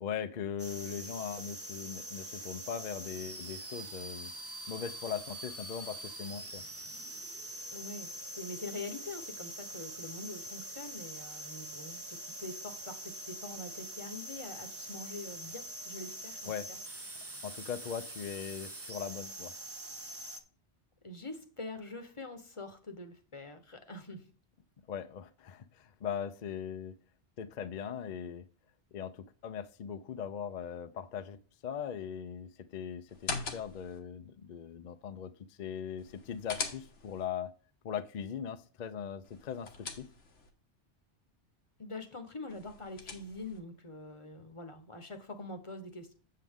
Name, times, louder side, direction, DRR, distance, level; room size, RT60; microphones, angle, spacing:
voice 1, 0.0-4.3 4.7-6.6 16.5-16.7 17.4-19.5 24.9-27.0 27.4-28.5 28.9-37.5 37.8-40.1, left 8 dB, 50° left, 11 dB, 0.6 m, -40 dB
sound 1, 0.6-20.4, right 1 dB, 15° right, 0.6 m, -44 dB
voice 2, 7.7-16.8 21.0-24.3 41.8-46.1, left 2 dB, 30° left, 6 dB, 1.0 m, -44 dB
sound 2, 33.1-34.0 36.0-37.3 39.2-40.5 42.5-43.6, left 4 dB, 85° left, 1.5 m, -41 dB
7.7 x 7.3 x 3.6 m, 0.40 s
omnidirectional pair, 1.2 m